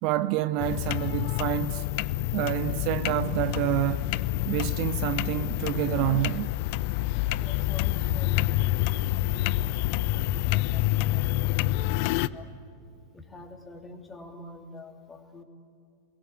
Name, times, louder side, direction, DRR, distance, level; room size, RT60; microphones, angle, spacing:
voice 1, 0.0-1.8 2.3-4.0 4.4-6.5, right 14 dB, 45° right, 0.6 m, -28 dB
sound 1, 0.6-12.3, left 17 dB, 45° left, 0.6 m, -27 dB
voice 2, 7.3-12.5 13.1-15.4, left 2 dB, 15° left, 3.1 m, -47 dB
29.0 x 22.0 x 8.4 m
figure-of-eight pair, 90°, 0 cm